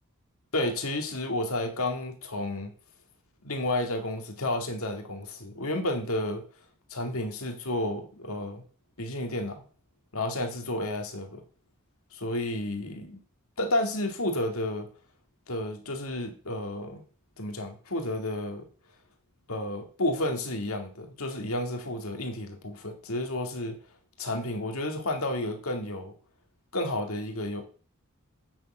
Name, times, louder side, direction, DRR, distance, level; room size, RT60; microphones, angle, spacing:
voice 1, 0.5-2.7 3.4-6.4 6.9-8.6 9.0-9.6 10.1-11.4 12.1-13.2 13.6-14.9 15.5-17.0 17.4-18.7 19.5-23.8 24.2-26.1 26.7-27.7, left 1 dB, 75° left, 4 dB, 2.3 m, -31 dB
8.8 x 6.9 x 7.9 m, 0.39 s
head